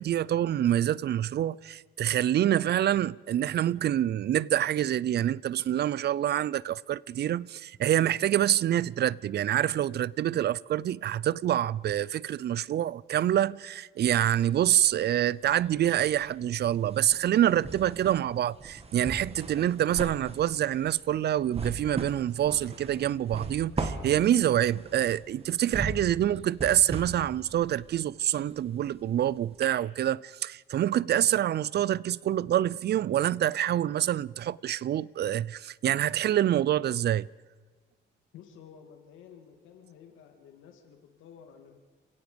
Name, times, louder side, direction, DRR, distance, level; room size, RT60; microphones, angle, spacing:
voice 1, 0.0-37.3, right 11 dB, 55° right, 0.5 m, -26 dB
sound 1, 14.0-15.1 15.4-29.2 29.6-29.7, right 3 dB, 30° right, 2.3 m, -39 dB
voice 2, 38.3-41.8, left 8 dB, 90° left, 2.5 m, -52 dB
29.5 x 17.5 x 5.2 m
cardioid pair, 90°, 20 cm